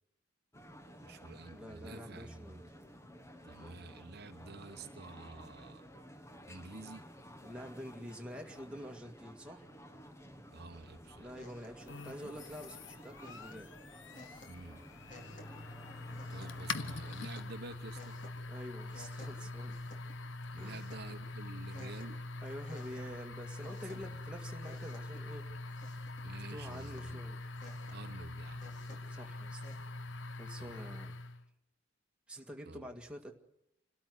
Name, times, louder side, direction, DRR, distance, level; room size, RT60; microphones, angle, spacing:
sound 1, 0.5-17.3, equal, 15° left, 1.4 m, -54 dB
voice 1, 1.0-2.6 3.4-5.9 6.5-7.1 10.5-11.3 14.5-15.1 16.3-18.2 20.5-22.2 26.2-27.3 27.9-28.8 30.6-30.9 32.6-32.9, right 3 dB, 55° right, 8 dB, 1.0 m, -50 dB
voice 2, 1.5-2.6 7.4-9.7 11.2-13.7 18.5-19.8 20.5-20.9 22.4-25.7 26.5-27.4 29.1-29.6 30.4-31.2 32.3-33.3, equal, 5° right, 1 dB, 2.0 m, -47 dB
sound 2, 10.7-29.8, left 1 dB, 40° left, 3.9 m, -58 dB
sound 3, 11.9-31.4, left 2 dB, 70° left, 1.1 m, -44 dB
28.5 x 13.0 x 9.7 m, 0.81 s
head